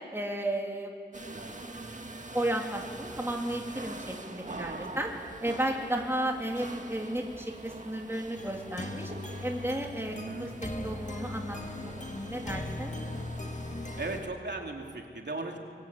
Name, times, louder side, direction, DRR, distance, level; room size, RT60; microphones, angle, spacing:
voice 1, 0.1-0.9 1.4-1.5 2.3-5.1 5.4-9.1 9.4-11.6 11.8-12.9, right 1 dB, 15° right, 0 dB, 3.2 m, -33 dB
sound 1, 1.1-14.3, right 2 dB, 40° right, 1.9 m, -44 dB
voice 2, 4.5-5.0 10.1-10.5 14.0-15.6, right 3 dB, 70° right, 1 dB, 3.0 m, -38 dB
sound 2, 8.4-14.2, left 2 dB, 40° left, 1.9 m, -39 dB
26.5 x 22.5 x 8.6 m, 2.2 s
wide cardioid pair, 70°, 18 cm